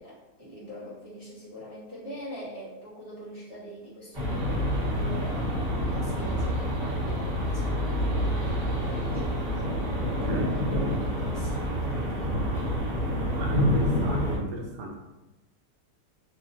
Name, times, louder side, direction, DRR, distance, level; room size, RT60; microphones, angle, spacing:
voice 1, 0.0-5.5 5.9-9.7 10.3-12.4, equal, 60° right, -11 dB, 0.3 m, -43 dB
sound 1, 4.1-14.4, equal, 30° right, 1.1 m, -28 dB
voice 2, 10.0-10.8 13.4-15.0, equal, 75° right, -1 dB, 1.2 m, -34 dB
2.8 x 2.7 x 2.6 m, 1.0 s
omnidirectional pair, 1.8 m